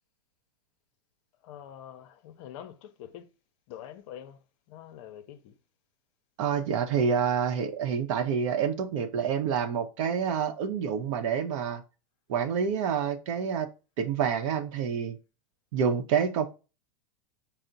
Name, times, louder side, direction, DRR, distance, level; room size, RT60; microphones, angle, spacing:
voice 1, 1.4-3.3 3.7-4.4 4.7-5.5, left 10 dB, 55° left, 0.6 m, -45 dB
voice 2, 6.4-11.8 12.3-13.7 14.0-15.2 15.7-16.5, right 7 dB, 60° right, 0.7 m, -28 dB
4.5 x 2.0 x 3.8 m
supercardioid pair, 135°, 19 cm